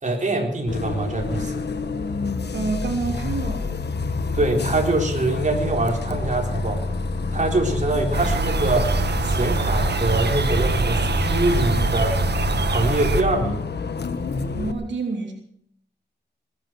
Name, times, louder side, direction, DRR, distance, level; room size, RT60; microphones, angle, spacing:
voice 1, 0.0-1.5 4.3-6.8 7.3-8.9 9.2-12.2 12.7-13.6, right 2 dB, 45° right, 1 dB, 3.9 m, -24 dB
Bus, 0.7-14.7, left 3 dB, 70° left, 1.4 m, -27 dB
voice 2, 2.5-3.8 14.5-15.3, right 4 dB, 90° right, 1 dB, 3.2 m, -28 dB
sound 1, 8.1-13.2, right 4 dB, 70° right, 1.4 m, -24 dB
20.5 x 10.5 x 6.2 m, 0.66 s
wide cardioid pair, 90°, 18 cm